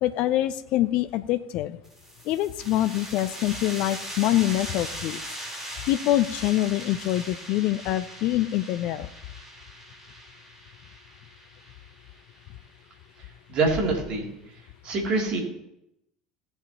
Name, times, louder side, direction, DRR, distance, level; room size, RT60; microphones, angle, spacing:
voice 1, 0.0-1.8 2.2-5.2 5.9-9.1, left 14 dB, 50° left, 13 dB, 0.5 m, -25 dB
sound 1, 1.8-13.2, right 1 dB, 15° right, 4.1 m, -40 dB
voice 2, 13.5-14.3 14.8-15.4, right 3 dB, 40° right, 0 dB, 3.0 m, -24 dB
17.0 x 7.9 x 3.0 m, 0.83 s
figure-of-eight pair, 70°, 2 cm